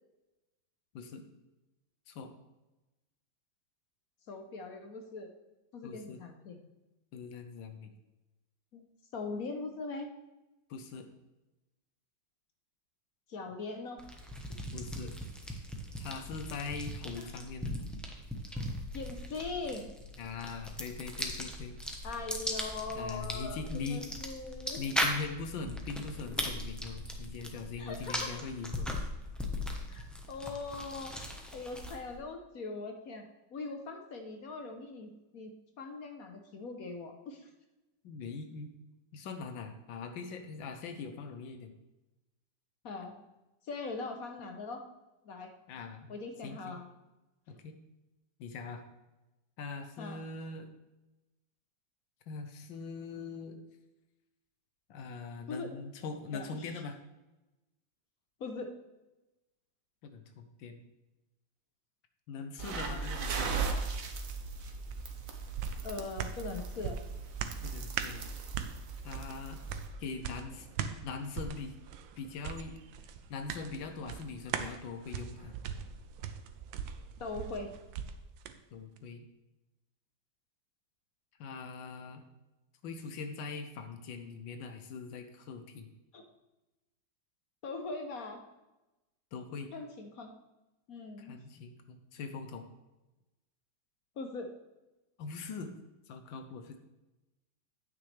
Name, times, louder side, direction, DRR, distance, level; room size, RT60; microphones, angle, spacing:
voice 1, 4.3-5.3 5.7-6.6 8.7-8.9 9.1-10.1 13.3-14.0 17.2-17.3 18.5-18.7 18.9-19.9 22.0-24.8 27.8-28.3 29.9-31.1 31.5-35.5 35.8-37.5 42.8-43.1 43.6-44.8 45.2-45.5 46.1-46.8 50.0-50.2 55.5-55.7 56.3-56.7 58.4-58.7 65.8-67.0 77.2-77.7 86.1-86.2 87.6-88.4 89.7-90.3 90.9-91.4 94.2-94.5, left 3 dB, 60° left, 5 dB, 1.1 m, -41 dB
voice 2, 5.8-6.2 7.1-7.9 10.7-11.1 14.7-15.1 16.0-17.8 20.2-21.8 22.9-24.1 24.8-28.9 38.0-38.8 39.1-41.7 45.7-46.2 46.4-46.8 47.5-47.8 48.4-48.8 49.6-50.7 52.3-53.6 54.9-57.0 60.0-60.8 62.3-63.5 67.6-68.3 69.0-69.6 70.0-70.7 71.0-71.8 72.2-72.7 73.3-75.5 78.7-79.3 81.4-82.2 82.8-85.9 89.3-89.7 91.2-92.7 95.2-95.8 96.1-96.8, left 4 dB, 85° left, 7 dB, 1.5 m, -42 dB
sound 1, 14.0-32.2, equal, ahead, 0.6 m, -39 dB
sound 2, 62.6-69.9, right 4 dB, 55° right, 1.2 m, -38 dB
sound 3, 64.9-78.6 79.0-79.1, right 7 dB, 85° right, 1.4 m, -41 dB
9.5 x 8.9 x 3.3 m, 1.0 s
omnidirectional pair, 2.0 m